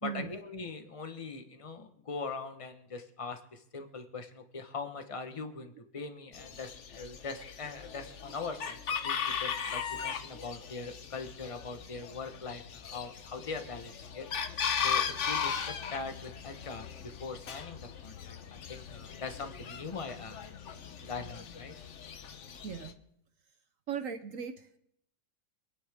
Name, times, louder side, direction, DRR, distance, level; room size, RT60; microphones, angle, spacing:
voice 1, 0.0-14.3 14.8-20.5 21.0-21.7, left 4 dB, 25° left, 7 dB, 0.9 m, -41 dB
Chicken rooster, 6.3-22.9, left 7 dB, 50° left, 1.0 m, -38 dB
voice 2, 22.6-22.9 23.9-24.8, right 7 dB, 55° right, 6 dB, 1.1 m, -38 dB
26.0 x 9.8 x 3.6 m, 0.76 s
omnidirectional pair, 2.0 m